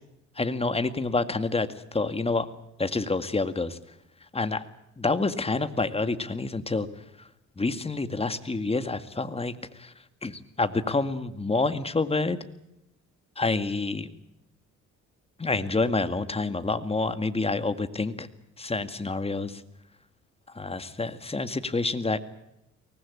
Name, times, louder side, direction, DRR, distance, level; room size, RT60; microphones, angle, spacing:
voice 1, 0.4-2.5 2.8-3.8 4.3-4.6 5.0-6.9 7.6-9.9 10.2-12.4 13.4-14.1 15.4-18.3 18.6-19.6 20.5-22.2, left 3 dB, 20° left, 10 dB, 2.0 m, -28 dB
24.0 x 19.0 x 8.6 m, 0.85 s
cardioid pair, 90°, 30 cm